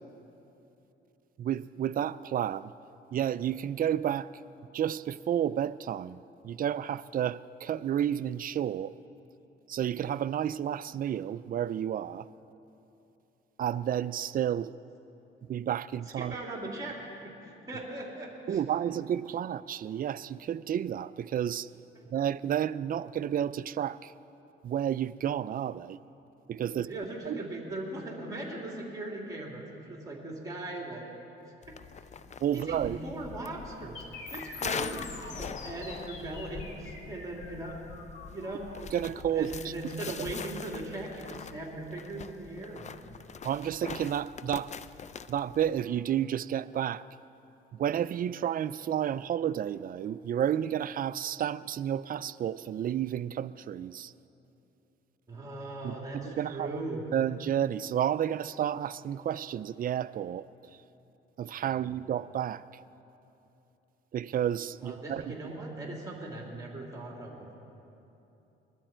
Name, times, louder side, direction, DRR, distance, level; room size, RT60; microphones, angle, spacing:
voice 1, 1.4-2.7 3.1-4.3 4.7-8.9 9.7-12.3 13.6-14.7 15.5-16.3 18.5-21.7 22.1-24.1 24.6-26.0 26.5-26.9 27.3-27.4 32.4-33.0 38.9-39.7 43.4-44.7 45.3-47.0 47.7-54.1 55.8-56.7 57.1-60.5 61.4-62.6 64.1-65.4, right 10 dB, 45° right, 0.4 m, -31 dB
voice 2, 16.2-17.0 17.4-18.6 21.9-22.0 26.7-31.0 31.7-31.8 32.5-37.8 38.3-38.7 39.3-42.9 55.3-57.0 61.7-61.9 64.8-67.6, right 2 dB, 15° right, 3.1 m, -39 dB
sound 1, 31.6-45.8, left 6 dB, 35° left, 0.5 m, -43 dB
sound 2, 33.9-41.9, left 4 dB, 70° left, 2.0 m, -47 dB
21.0 x 12.5 x 4.4 m
cardioid pair, 90°, 20 cm